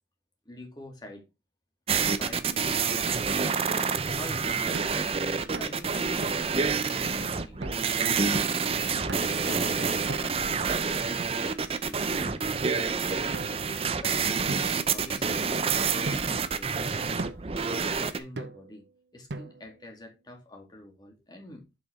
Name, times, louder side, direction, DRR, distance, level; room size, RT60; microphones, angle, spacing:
voice 1, 0.5-1.3 2.1-18.9 19.1-21.7, left 1 dB, 25° left, 2.1 m, -47 dB
sound 1, 1.9-18.2, right 5 dB, 35° right, 0.6 m, -28 dB
sound 2, 4.7-5.0 5.5-5.8 6.2-6.6 7.1-7.2 7.6-7.8 8.3-8.6 9.1-9.4 10.1-10.5 11.2-11.9 12.6-12.8 13.3-14.0 14.5-15.5 16.0-16.5 17.2-17.6 18.4-18.8 19.3-19.8, right 2 dB, 80° right, 0.9 m, -39 dB
7.0 x 5.7 x 4.3 m
head